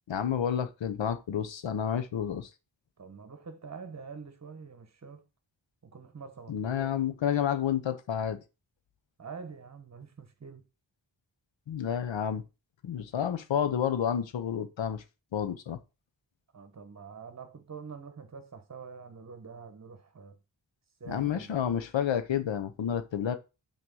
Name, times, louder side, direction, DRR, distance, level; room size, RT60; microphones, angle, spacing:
voice 1, 0.1-2.5 6.5-8.4 11.7-12.4 12.8-15.0 15.3-15.8 21.1-23.4, left 9 dB, 80° left, 0.8 m, -30 dB
voice 2, 3.0-5.2 5.8-6.9 9.2-10.7 16.5-20.4 21.0-21.5, right 5 dB, 35° right, 1.2 m, -46 dB
6.2 x 4.3 x 6.1 m
wide cardioid pair, 170°, 45 cm